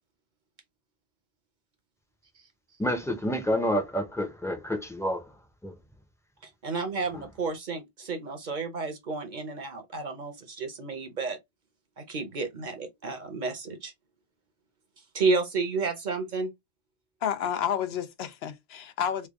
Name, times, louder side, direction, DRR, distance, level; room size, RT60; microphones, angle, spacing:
voice 1, 2.8-5.8 7.1-7.2, equal, 5° left, 0.6 m, -29 dB
voice 2, 6.4-11.4 12.0-13.9 15.1-16.5, right 4 dB, 50° right, 0.8 m, -31 dB
voice 3, 17.2-19.3, left 9 dB, 75° left, 0.8 m, -30 dB
3.3 x 2.3 x 3.5 m
omnidirectional pair, 1.1 m